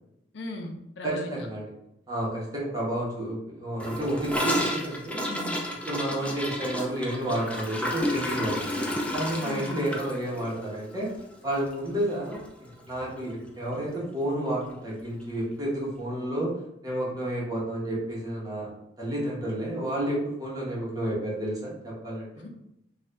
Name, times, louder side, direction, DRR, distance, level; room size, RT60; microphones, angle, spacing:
voice 1, 0.3-1.5 5.2-5.6 9.4-9.9 22.4-22.5, left 1 dB, 75° left, 2 dB, 0.5 m, -37 dB
voice 2, 1.0-1.7 2.1-5.3 5.8-11.1 11.4-16.5 16.8-18.7 19.0-22.4, right 1 dB, 20° right, -5 dB, 1.0 m, -31 dB
Gurgling / Toilet flush, 3.8-12.1 12.3-12.5 12.7-13.2 13.5-13.6 13.9-14.0 14.9-15.0, left 1 dB, 5° left, 0.3 m, -32 dB
2.6 x 2.3 x 3.2 m, 0.81 s
head